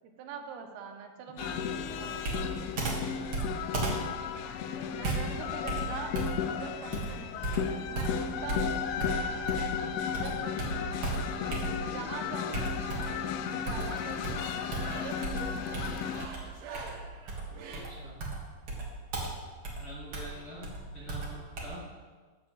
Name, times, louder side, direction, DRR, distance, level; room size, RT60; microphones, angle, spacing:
voice 1, 0.0-2.4 4.9-7.6 7.9-8.8 10.0-11.0 11.9-12.7 13.5-14.5 14.9-16.1, right 5 dB, 90° right, 4 dB, 3.2 m, -43 dB
sound 1, 1.4-16.3, left 8 dB, 85° left, 2.3 m, -34 dB
voice 2, 1.4-1.7 2.4-2.6 3.0-3.3 17.7-18.2 19.8-21.9, equal, 50° left, -9 dB, 1.8 m, -46 dB
Computer keyboard, 2.2-9.8 10.1-12.0 12.5-13.3 13.7-21.7, right 3 dB, 55° right, 1.7 m, -36 dB
sound 2, 6.3-7.2 8.0-9.2 9.5-17.8, right 4 dB, 70° right, 2.7 m, -47 dB
14.5 x 7.6 x 3.2 m, 1.4 s
omnidirectional pair, 5.0 m